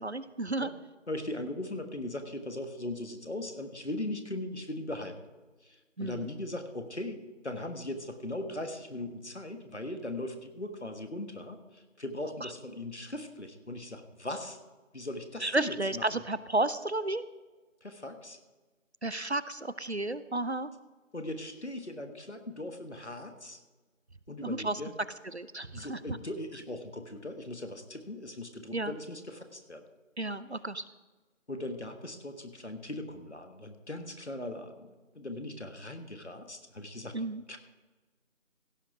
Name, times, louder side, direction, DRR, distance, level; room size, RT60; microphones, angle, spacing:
voice 1, 0.0-0.7 6.0-6.3 12.4-12.5 15.4-17.2 19.0-20.7 24.4-24.8 25.3-26.2 28.7-28.9 30.2-30.8 37.1-37.4, right 2 dB, 55° right, 15 dB, 0.5 m, -32 dB
voice 2, 1.1-5.2 5.6-14.6 14.9-16.1 17.8-18.4 21.1-23.6 24.3-24.9 25.7-29.8 31.5-37.2 37.5-37.6, left 1 dB, 55° left, 7 dB, 1.4 m, -39 dB
16.0 x 6.4 x 4.9 m, 1.3 s
figure-of-eight pair, 180°, 39 cm